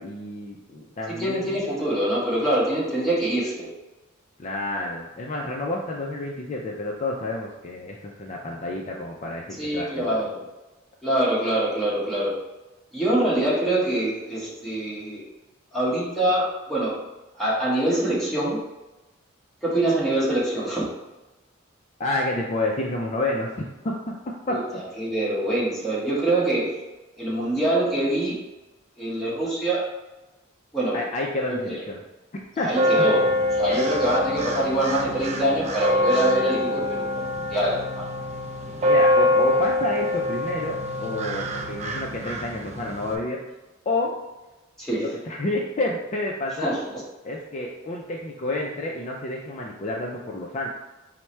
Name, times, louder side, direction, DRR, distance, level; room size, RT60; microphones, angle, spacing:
voice 1, 0.0-1.6 4.4-10.1 22.0-24.1 24.5-24.6 30.9-32.0 32.6-32.7 32.9-33.0 38.8-43.4 43.9-44.1 45.0-46.8 47.2-50.7, left 2 dB, 35° left, -1 dB, 0.4 m, -29 dB
voice 2, 1.2-3.7 9.6-10.4 11.0-12.4 12.9-15.2 15.7-17.0 17.4-18.6 19.6-20.9 24.5-26.8 27.2-28.4 29.0-29.8 30.7-31.0 31.5-31.8 32.6-33.3 33.5-38.1 44.8-45.1 46.6-46.8, right 1 dB, ahead, -7 dB, 1.1 m, -24 dB
sound 1, 32.7-43.2, left 1 dB, 30° right, 0.4 m, -24 dB
4.5 x 2.1 x 4.3 m, 1.1 s
head